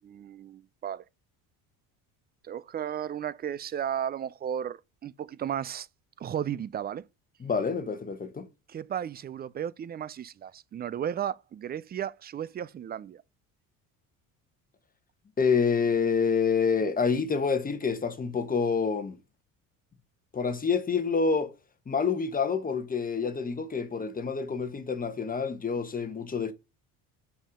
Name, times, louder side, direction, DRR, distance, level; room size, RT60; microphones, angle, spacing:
voice 1, 0.0-1.0 2.4-5.9 6.2-7.0 8.7-13.2, right 9 dB, 25° right, 0.4 m, -34 dB
voice 2, 7.4-8.5 15.4-19.2 20.3-21.5 21.9-26.5, left 5 dB, 20° left, 1.1 m, -27 dB
5.6 x 5.3 x 4.9 m
cardioid pair, 115°, 39 cm